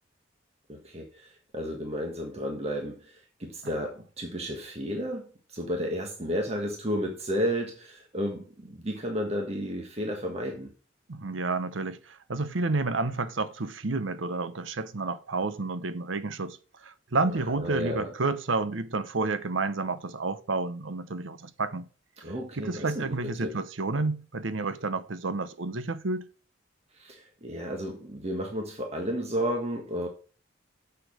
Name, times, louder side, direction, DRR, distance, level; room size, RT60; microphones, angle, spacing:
voice 1, 0.7-10.7 17.3-18.1 22.2-23.5 26.9-30.1, equal, 35° right, 1.4 m, -32 dB
voice 2, 11.1-21.9 22.5-26.3, right 3 dB, 80° right, 0.8 m, -30 dB
6.8 x 6.5 x 6.4 m
head